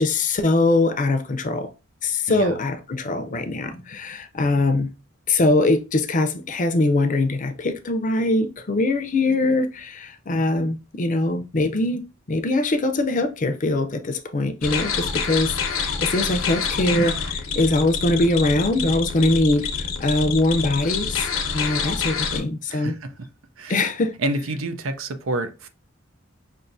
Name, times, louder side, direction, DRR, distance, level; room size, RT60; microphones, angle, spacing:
voice 1, 0.0-1.7 2.0-4.9 5.3-12.0 12.3-22.9 23.7-24.1, left 2 dB, 40° left, 0.6 m, -22 dB
sound 1, 14.6-22.4, left 6 dB, 80° left, 0.8 m, -27 dB
voice 2, 22.7-23.1 23.6-23.8 24.2-25.7, right 2 dB, 85° right, 0.6 m, -28 dB
5.3 x 2.7 x 2.6 m
head